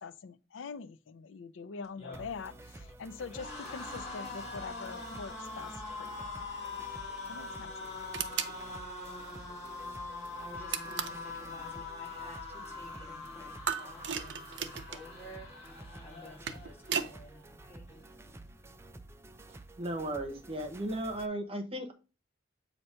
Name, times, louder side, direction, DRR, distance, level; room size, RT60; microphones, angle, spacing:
voice 1, 0.0-5.7 6.0-6.2 7.3-7.7, left 5 dB, 90° left, 0.5 m, -44 dB
sound 1, 1.8-17.0 17.4-17.6 17.9-18.7, left 3 dB, 35° left, 2.1 m, -43 dB
sound 2, 2.1-21.3, right 2 dB, 15° right, 0.4 m, -52 dB
sound 3, 8.1-8.6 10.7-11.2 13.7-15.1 16.2-17.1, right 8 dB, 65° right, 0.6 m, -35 dB
voice 2, 10.0-17.9, equal, 15° left, 1.9 m, -53 dB
voice 3, 19.5-21.9, right 1 dB, 30° right, 0.9 m, -36 dB
7.6 x 2.9 x 5.5 m
head